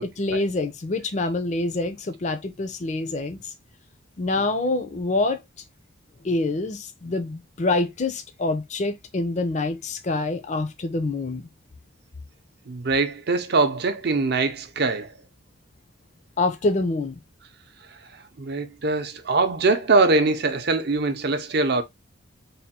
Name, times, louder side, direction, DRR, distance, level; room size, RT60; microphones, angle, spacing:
voice 1, 0.2-3.4 4.2-5.4 6.2-11.5 16.4-17.2, left 2 dB, 35° left, 0.4 m, -26 dB
voice 2, 12.7-15.1 18.4-21.8, right 3 dB, 55° right, 0.6 m, -22 dB
3.4 x 2.2 x 4.1 m
head